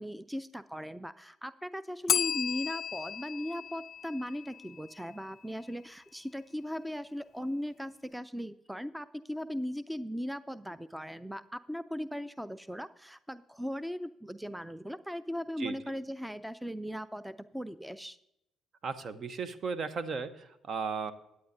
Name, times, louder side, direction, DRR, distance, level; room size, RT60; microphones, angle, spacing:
voice 1, 0.0-18.2, equal, 5° right, 15 dB, 0.5 m, -38 dB
Bell, 2.1-4.9, left 9 dB, 55° left, 0.3 m, -34 dB
voice 2, 18.8-21.1, right 5 dB, 50° right, 13 dB, 0.9 m, -35 dB
17.0 x 9.5 x 2.7 m, 0.84 s
hypercardioid pair, 45°, 0 cm